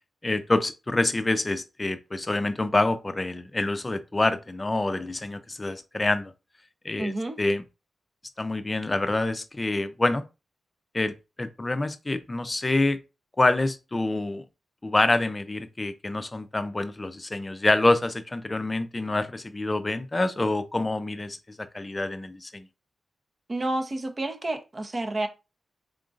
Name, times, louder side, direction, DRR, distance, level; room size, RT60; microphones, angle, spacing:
voice 1, 0.2-6.3 6.8-7.1 7.4-7.6 8.4-10.2 10.9-13.0 13.4-14.4 14.8-22.7, left 2 dB, 25° left, 0.5 m, -26 dB
voice 2, 7.0-7.4 23.5-25.3, right 2 dB, 35° right, 0.8 m, -29 dB
3.7 x 3.6 x 2.5 m
cardioid pair, 80°, 0 cm